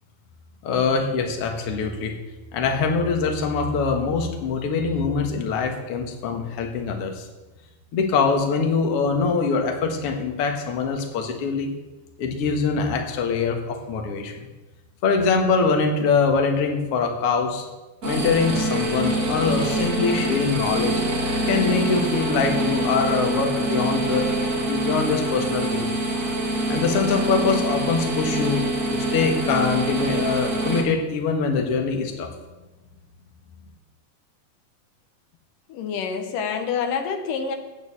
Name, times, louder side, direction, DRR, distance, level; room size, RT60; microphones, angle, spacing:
voice 1, 0.6-2.2 2.5-7.3 7.9-11.7 12.2-14.3 15.0-17.7 18.0-21.0 21.4-25.9 26.7-28.6 28.9-32.3, left 5 dB, 55° left, 3 dB, 2.2 m, -23 dB
sound 1, 18.0-30.8, right 1 dB, 30° right, 1.7 m, -25 dB
voice 2, 35.7-37.6, left 6 dB, 85° left, 5 dB, 2.7 m, -27 dB
11.0 x 9.0 x 7.4 m, 1.1 s
omnidirectional pair, 3.7 m